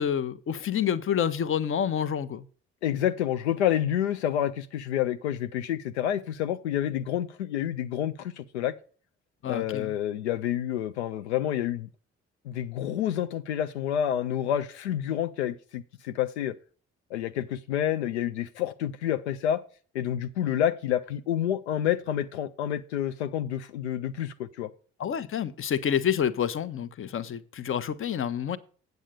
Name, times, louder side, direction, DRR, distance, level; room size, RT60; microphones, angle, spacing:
voice 1, 0.0-2.4 9.4-9.9 25.0-28.6, left 8 dB, 40° left, 0.8 m, -28 dB
voice 2, 2.8-8.7 9.5-11.9 12.5-16.5 17.1-19.6 19.9-24.7, left 10 dB, 80° left, 0.5 m, -28 dB
8.5 x 7.9 x 5.0 m
figure-of-eight pair, 45°, 34 cm